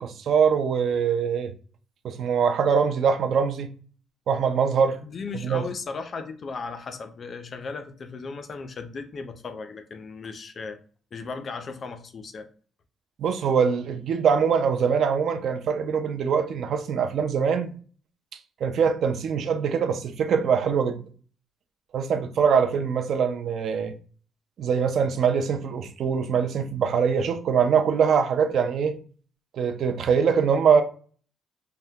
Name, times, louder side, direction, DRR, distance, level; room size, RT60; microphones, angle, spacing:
voice 1, 0.0-1.5 2.0-3.7 4.3-5.0 5.4-5.6 13.2-17.7 18.6-21.0 21.9-23.9 24.6-29.0 29.6-30.8, right 6 dB, 50° right, 0.4 m, -23 dB
voice 2, 5.0-10.8 11.1-12.5, left 4 dB, 35° left, 0.3 m, -36 dB
3.4 x 2.1 x 2.7 m
cardioid pair, 170°, 0 cm